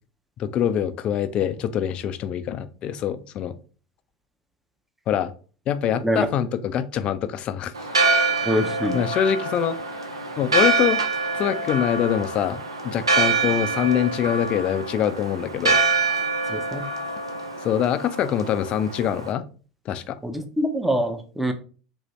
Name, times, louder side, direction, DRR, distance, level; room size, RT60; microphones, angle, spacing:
voice 1, 0.4-3.6 5.1-5.3 5.7-7.7 8.4-8.5 8.9-9.8 10.4-11.0 11.3-15.8 17.6-19.4 19.9-20.2, left 9 dB, 40° left, 12 dB, 0.3 m, -24 dB
Church bell, 7.8-19.3, right 3 dB, 90° right, 0.5 m, -25 dB
voice 2, 8.5-9.0 16.5-16.8 20.2-21.5, equal, 5° right, 6 dB, 0.6 m, -24 dB
3.0 x 2.6 x 3.1 m, 0.38 s
figure-of-eight pair, 80°, 3 cm